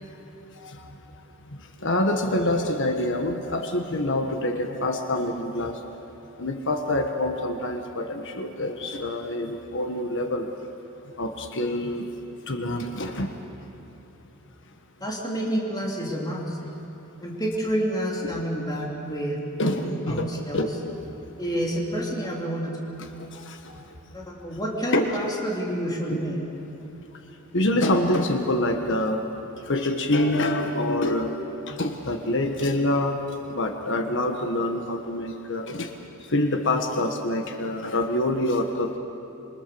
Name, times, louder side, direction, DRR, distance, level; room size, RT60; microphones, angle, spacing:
voice 1, 1.8-5.8 6.4-10.5 11.2-12.1 12.5-13.3 18.2-18.3 19.6-20.3 20.5-20.9 23.3-23.7 24.9-25.1 26.1-26.2 27.5-29.2 29.6-31.4 31.7-33.2 33.5-35.9 36.3-39.0, left 1 dB, 60° left, 5 dB, 1.5 m, -26 dB
voice 2, 15.0-16.6 17.2-20.7 21.4-22.8 24.1-26.4, equal, 20° left, -3 dB, 3.3 m, -29 dB
27.0 x 24.0 x 7.1 m, 2.9 s
head